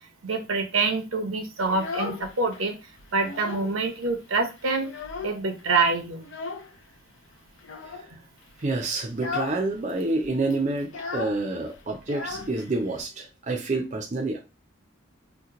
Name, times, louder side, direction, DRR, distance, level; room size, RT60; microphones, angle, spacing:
voice 1, 0.2-2.7 3.1-4.9 5.2-6.3, right 3 dB, 85° right, 5 dB, 0.7 m, -26 dB
Child speech kid speaking, 1.6-2.6 3.0-3.8 4.1-4.2 4.5-5.6 6.2-6.7 7.6-8.1 8.5-8.7 9.1-9.6 9.9-10.0 10.2-13.0, left 4 dB, 65° left, 0.5 m, -36 dB
voice 2, 8.6-14.4, right 2 dB, 35° right, 2 dB, 0.4 m, -28 dB
2.9 x 2.1 x 3.7 m, 0.28 s
head